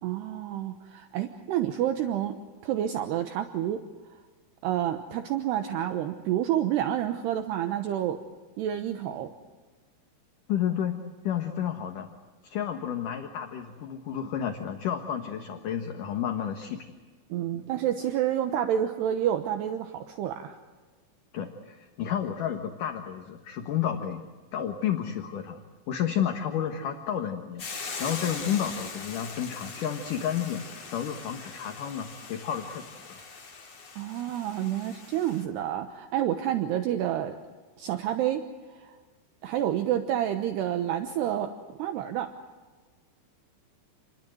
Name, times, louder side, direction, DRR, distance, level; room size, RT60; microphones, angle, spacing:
voice 1, 0.0-2.4 2.6-3.8 4.6-8.2 8.6-9.3 17.3-20.6 34.0-37.3 37.8-38.4 38.7-39.0 39.4-42.3, right 11 dB, 75° right, 7 dB, 2.9 m, -29 dB
voice 2, 10.5-11.0 11.2-12.1 12.4-16.9 21.3-24.2 24.5-27.7 28.0-30.6 30.9-33.2, left 9 dB, 60° left, 5 dB, 2.3 m, -31 dB
Hiss / Boiling, 27.6-35.4, left 4 dB, 35° left, 3.6 m, -41 dB
29.0 x 21.5 x 7.9 m, 1.3 s
omnidirectional pair, 5.4 m